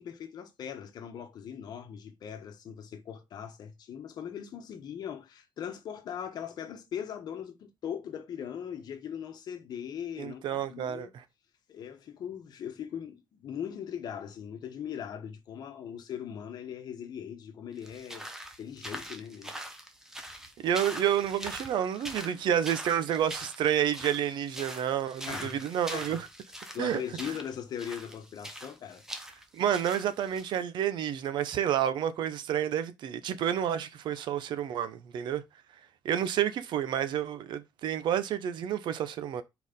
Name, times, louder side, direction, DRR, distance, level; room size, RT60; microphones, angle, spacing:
voice 1, 0.0-11.1 11.7-18.3 18.6-19.5 21.9-22.0 25.3-25.6 25.9-26.2 26.7-29.0, left 8 dB, 60° left, 1.3 m, -40 dB
voice 2, 10.2-11.2 20.6-26.3 26.8-27.0 29.5-35.4 36.0-39.4, right 10 dB, 75° right, 0.8 m, -29 dB
sound 1, 17.8-30.6, right 1 dB, 5° right, 0.9 m, -43 dB
4.6 x 4.3 x 5.2 m
cardioid pair, 155°, 8 cm